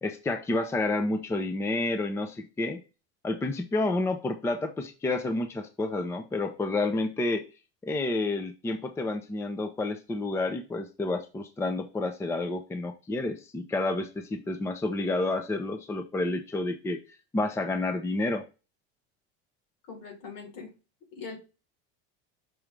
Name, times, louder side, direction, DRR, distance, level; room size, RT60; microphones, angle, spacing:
voice 1, 0.0-2.8 3.2-7.4 7.8-17.0 17.3-18.4, left 2 dB, 10° left, 7 dB, 0.5 m, -29 dB
voice 2, 19.9-20.7 21.1-21.4, left 5 dB, 75° left, 1 dB, 3.2 m, -41 dB
6.1 x 3.1 x 5.0 m, 0.31 s
cardioid pair, 140°, 30 cm